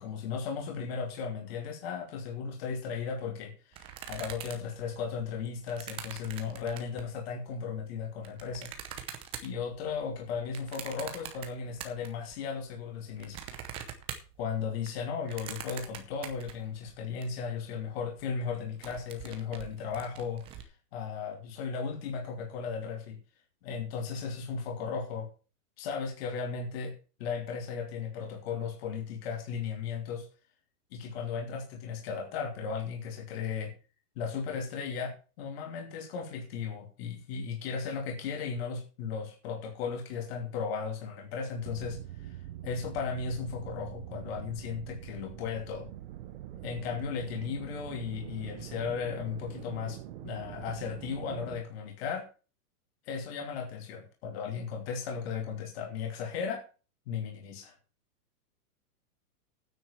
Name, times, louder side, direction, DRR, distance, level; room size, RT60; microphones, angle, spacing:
voice 1, 0.0-8.7 9.4-13.4 14.4-23.2 23.6-25.3 25.8-26.9 27.2-30.3 30.9-33.7 34.2-42.4 42.6-45.9 46.6-50.0 50.2-52.3 53.0-56.6 57.1-57.7, left 6 dB, 40° left, 2 dB, 2.9 m, -36 dB
sound 1, 3.7-7.2 7.8-12.4 12.7-17.3 17.6-17.7 17.9-18.2 18.5-20.6, right 9 dB, 10° right, 0.7 m, -44 dB
sound 2, 41.6-51.6, right 13 dB, 35° right, 1.1 m, -44 dB
9.4 x 8.0 x 7.1 m, 0.35 s
supercardioid pair, 170°, 47 cm